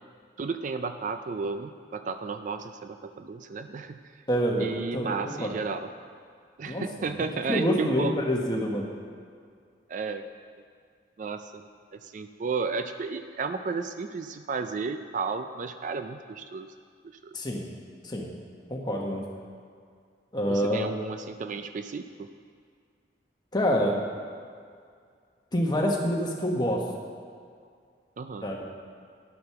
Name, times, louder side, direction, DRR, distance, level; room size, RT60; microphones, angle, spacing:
voice 1, 0.4-4.2 4.6-5.9 6.6-8.1 9.9-10.2 11.2-11.6 11.9-16.7 17.0-17.4 20.5-22.3 28.2-28.5, right 4 dB, 45° right, 9 dB, 0.4 m, -33 dB
voice 2, 4.3-5.5 6.7-8.9 17.3-17.7 18.0-18.3 18.7-19.2 20.3-20.9 23.5-24.0 25.5-26.8 28.4-28.6, equal, 25° left, -1 dB, 1.2 m, -27 dB
10.5 x 6.6 x 5.7 m, 2.1 s
head